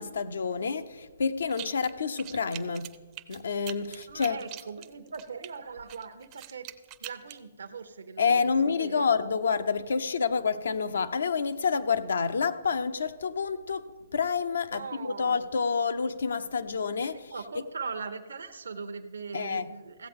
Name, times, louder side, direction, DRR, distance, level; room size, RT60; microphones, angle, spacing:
voice 1, 0.0-2.9 3.3-4.4 8.2-13.9 14.1-17.6 19.3-19.7, left 5 dB, 80° left, 0.6 m, -28 dB
sound 1, 1.5-1.9 2.2-5.5 5.9-7.4, right 15 dB, 30° right, 0.4 m, -43 dB
voice 2, 3.9-6.7 7.0-8.5 8.8-9.1 14.7-15.5 17.3-20.1, right 5 dB, 85° right, 0.7 m, -40 dB
15.5 x 7.7 x 3.6 m
hypercardioid pair, 145°, 0 cm